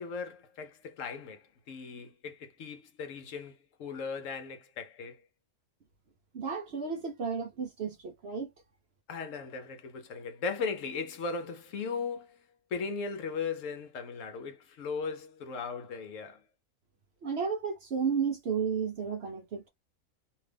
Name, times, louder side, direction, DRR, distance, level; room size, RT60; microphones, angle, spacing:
voice 1, 0.0-5.2 9.1-12.4 12.7-16.4, left 5 dB, 65° left, 0.9 m, -37 dB
voice 2, 6.3-8.5 17.2-19.7, right 6 dB, 60° right, 0.7 m, -33 dB
2.6 x 2.4 x 3.3 m
omnidirectional pair, 1.5 m